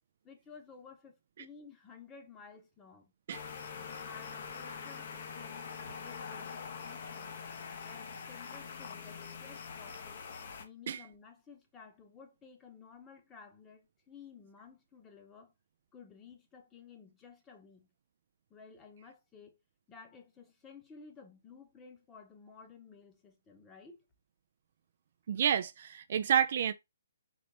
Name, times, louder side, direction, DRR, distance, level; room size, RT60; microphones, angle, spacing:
voice 1, 0.2-3.1 3.8-5.7 6.0-7.4 7.8-10.3 10.6-15.5 15.9-17.9 18.5-19.6 19.9-24.0, left 5 dB, 15° left, 0.9 m, -54 dB
sound 1, 3.3-10.7, left 6 dB, 55° left, 0.8 m, -44 dB
voice 2, 25.3-26.7, right 8 dB, 55° right, 0.3 m, -29 dB
4.0 x 3.1 x 3.3 m
hypercardioid pair, 145°, 0 cm